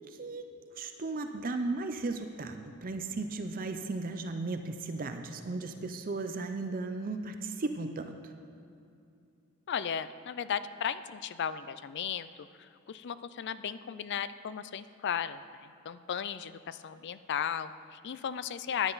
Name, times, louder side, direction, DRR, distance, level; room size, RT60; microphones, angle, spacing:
voice 1, 0.1-0.4 0.7-8.3, right 3 dB, 40° right, 7 dB, 0.5 m, -36 dB
voice 2, 9.7-18.9, left 8 dB, 50° left, 14 dB, 0.4 m, -36 dB
15.0 x 9.9 x 4.0 m, 2.7 s
head